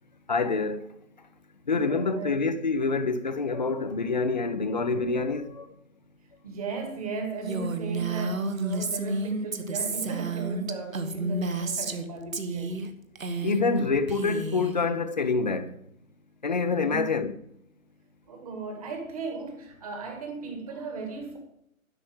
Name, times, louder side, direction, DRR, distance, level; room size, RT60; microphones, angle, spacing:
voice 1, 0.3-0.8 1.7-5.7 13.4-15.7 16.4-17.3, left 4 dB, 30° left, 0.7 m, -26 dB
voice 2, 1.7-2.3 6.4-12.8 16.8-17.1 18.3-21.4, right 4 dB, 25° right, 2.1 m, -36 dB
Female speech woman speaking, 7.4-12.0 12.3-12.9 13.1-13.8 14.1-14.7, right 3 dB, 70° right, 1.4 m, -31 dB
12.0 x 6.1 x 7.6 m
figure-of-eight pair, 155°, 42 cm